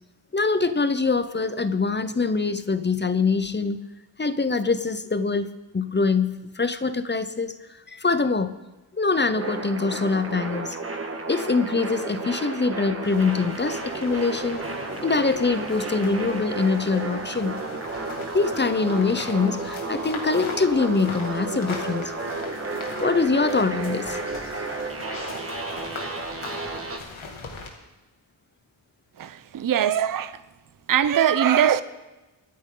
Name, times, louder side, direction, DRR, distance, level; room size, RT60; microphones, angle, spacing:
voice 1, 0.3-3.8 4.2-7.5 7.9-8.6 9.0-10.8 11.3-17.6 18.3-22.1 23.0-24.2, left 4 dB, 25° left, 0.6 m, -24 dB
sound 1, 9.3-27.0, right 3 dB, 30° right, 1.4 m, -32 dB
sound 2, 13.0-27.7, left 4 dB, 90° left, 2.3 m, -40 dB
voice 2, 29.2-30.3 30.9-31.8, right 9 dB, 45° right, 0.6 m, -21 dB
24.0 x 9.5 x 3.8 m
wide cardioid pair, 135°, 47 cm